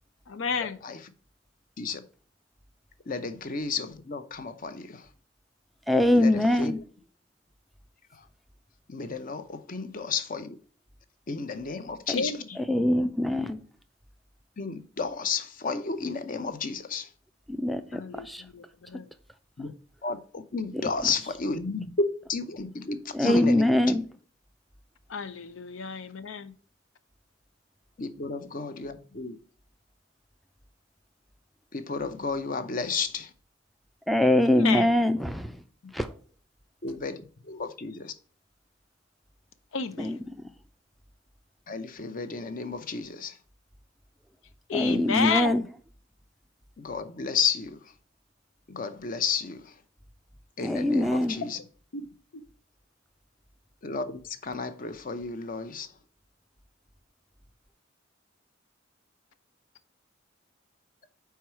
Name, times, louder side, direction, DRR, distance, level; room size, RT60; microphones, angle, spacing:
voice 1, 0.3-0.8 12.1-12.4 17.9-19.1 25.1-26.5 34.5-35.0 39.7-40.2 44.7-45.7 51.9-52.1 52.3-52.5, left 5 dB, 80° left, 0.6 m, -31 dB
voice 2, 3.1-4.8 6.1-6.3 6.6-6.7 8.9-10.5 11.3-12.3 14.6-17.0 19.6-19.7 20.0-21.9 22.3-23.8 28.0-29.4 31.7-33.3 36.8-37.2 37.5-38.1 41.7-43.3 46.8-47.8 48.7-49.6 50.6-51.5 53.8-55.9, left 5 dB, 45° left, 0.7 m, -32 dB
voice 3, 5.9-6.8 12.1-12.2 12.6-13.6 17.5-18.4 20.7-21.3 23.1-24.0 34.1-35.3 35.9-36.1 40.0-40.2 44.7-45.6 50.6-51.4, left 1 dB, ahead, 0.4 m, -23 dB
4.6 x 4.6 x 5.7 m
head